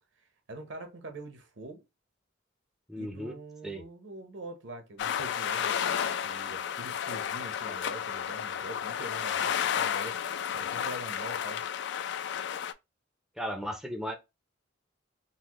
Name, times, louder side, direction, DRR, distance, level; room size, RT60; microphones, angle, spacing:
voice 1, 0.5-1.8 3.0-10.2 10.5-11.6, right 1 dB, 70° right, 0.9 m, -44 dB
voice 2, 2.9-3.3 3.6-3.8 13.4-14.1, equal, ahead, 0.5 m, -35 dB
sound 1, 5.0-12.7, left 8 dB, 60° left, 0.3 m, -32 dB
4.0 x 2.1 x 3.0 m
head